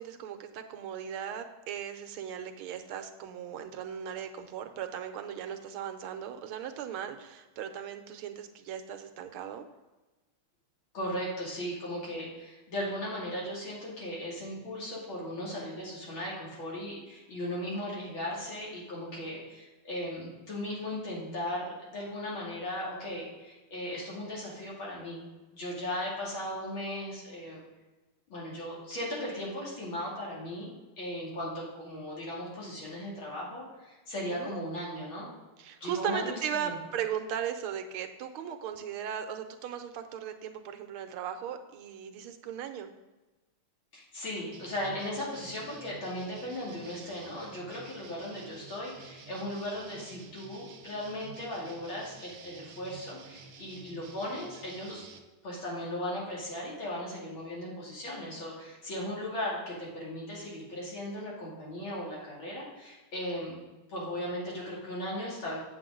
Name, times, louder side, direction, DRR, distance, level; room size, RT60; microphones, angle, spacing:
voice 1, 0.0-9.6 34.3-34.5 35.6-42.9, right 9 dB, 85° right, 7 dB, 1.6 m, -37 dB
voice 2, 10.9-25.3 25.5-27.6 28.3-30.7 31.0-35.3 35.8-36.8 43.9-55.1 55.4-63.6 63.9-65.6, left 1 dB, 65° left, -5 dB, 3.4 m, -37 dB
sound 1, 44.5-55.2, right 5 dB, 60° right, 1.2 m, -51 dB
8.4 x 7.4 x 3.7 m, 1.2 s
omnidirectional pair, 2.4 m